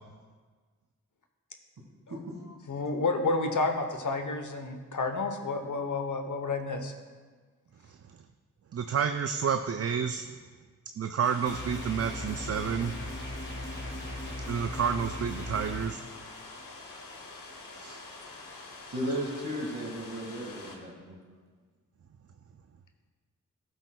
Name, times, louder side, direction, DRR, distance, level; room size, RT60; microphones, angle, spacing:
voice 1, 2.7-6.9, left 3 dB, 65° left, 6 dB, 1.0 m, -30 dB
voice 2, 8.7-10.3 11.0-12.9 14.5-16.0 17.7-18.0, right 7 dB, 50° right, 8 dB, 0.5 m, -30 dB
sound 1, 11.2-20.8, left 3 dB, 90° left, 1.2 m, -46 dB
sound 2, 11.5-15.9, left 1 dB, 35° left, 2.4 m, -38 dB
voice 3, 18.9-21.2, equal, 70° right, -1 dB, 2.2 m, -35 dB
13.5 x 8.0 x 2.3 m, 1.5 s
cardioid pair, 40°, 33 cm